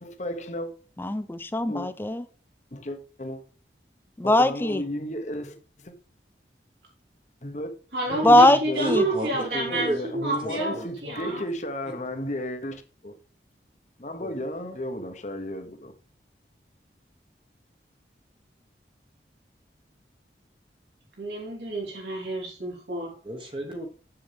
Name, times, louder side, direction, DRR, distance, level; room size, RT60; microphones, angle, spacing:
voice 1, 0.0-0.7 1.7-1.9 2.7-3.4 4.2-5.9 7.4-7.7 8.1-8.9 9.3-13.1 14.0-15.9, left 1 dB, 40° left, 1.0 m, -34 dB
voice 2, 1.0-2.2 4.2-4.8 8.2-9.0, left 1 dB, 10° left, 0.4 m, -20 dB
voice 3, 7.9-11.4 21.2-23.1, right 1 dB, 75° right, 3.4 m, -29 dB
voice 4, 8.8-9.3 9.7-10.0 10.4-10.8 14.2-14.4 23.2-23.9, right 1 dB, 30° right, 1.1 m, -33 dB
7.7 x 7.4 x 3.4 m
head